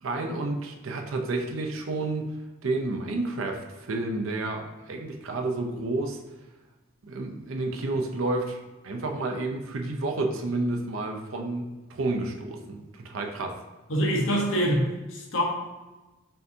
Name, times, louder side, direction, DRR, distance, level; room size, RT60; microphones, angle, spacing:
voice 1, 0.0-2.3 2.6-6.2 7.0-13.6, right 2 dB, 80° right, 3 dB, 0.6 m, -30 dB
voice 2, 13.9-15.4, equal, 70° left, 0 dB, 0.9 m, -25 dB
5.5 x 2.6 x 2.7 m, 1.1 s
head